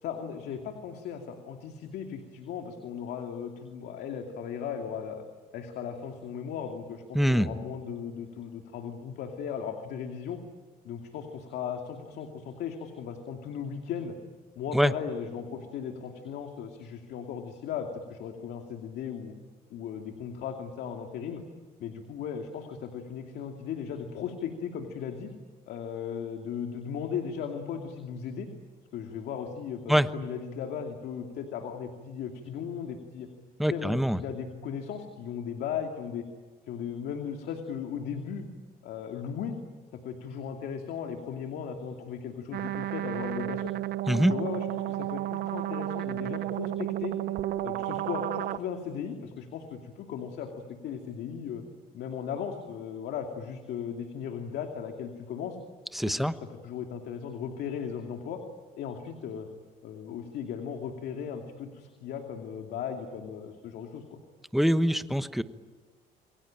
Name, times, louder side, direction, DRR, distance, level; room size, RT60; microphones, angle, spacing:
voice 1, 0.0-5.2 5.5-10.4 10.8-14.2 14.6-19.3 19.7-21.4 21.8-25.3 25.7-28.5 28.9-33.3 33.6-36.2 36.7-38.5 38.8-39.6 40.0-43.7 44.2-47.2 47.6-50.5 50.8-51.6 51.9-55.6 56.0-56.3 56.6-58.4 58.7-59.5 59.8-64.2, left 7 dB, 75° left, 4 dB, 2.7 m, -37 dB
voice 2, 7.1-7.5 14.7-14.9 29.9-30.1 33.6-34.2 44.1-44.3 55.9-56.3 64.5-65.4, equal, ahead, 11 dB, 1.1 m, -24 dB
sound 1, 42.5-48.6, right 14 dB, 65° right, 1.0 m, -32 dB
28.5 x 23.0 x 8.9 m, 1.4 s
cardioid pair, 110°, 17 cm